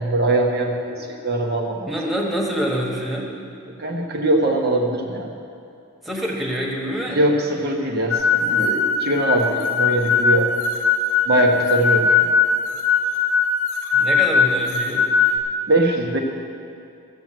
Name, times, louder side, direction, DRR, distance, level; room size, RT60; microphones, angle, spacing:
voice 1, 0.0-1.9 3.7-5.3 7.1-10.5 11.3-12.3 15.7-16.2, right 1 dB, 45° right, 0 dB, 1.1 m, -21 dB
voice 2, 1.9-3.3 6.0-7.2 13.9-15.1, equal, ahead, -2 dB, 1.5 m, -26 dB
sound 1, 8.1-15.4, left 5 dB, 90° left, 1.3 m, -20 dB
14.0 x 7.4 x 7.7 m, 2.5 s
head